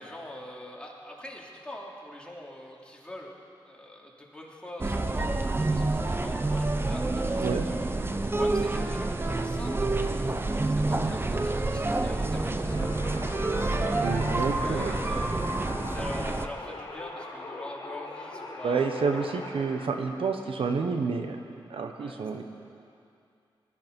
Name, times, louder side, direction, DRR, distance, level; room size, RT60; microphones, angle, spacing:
voice 1, 0.0-3.3 3.6-7.8 8.3-15.3 15.9-20.0 22.0-22.4, left 1 dB, 10° left, -3 dB, 3.1 m, -44 dB
sound 1, 4.8-16.5, right 2 dB, 25° right, 0.9 m, -28 dB
voice 2, 7.4-7.7 14.0-14.9 18.6-21.4 21.7-22.4, right 5 dB, 75° right, 5 dB, 1.1 m, -29 dB
sound 2, 12.7-19.9, left 2 dB, 50° left, 3.1 m, -41 dB
19.5 x 13.5 x 5.4 m, 2.5 s
cardioid pair, 65°, 9 cm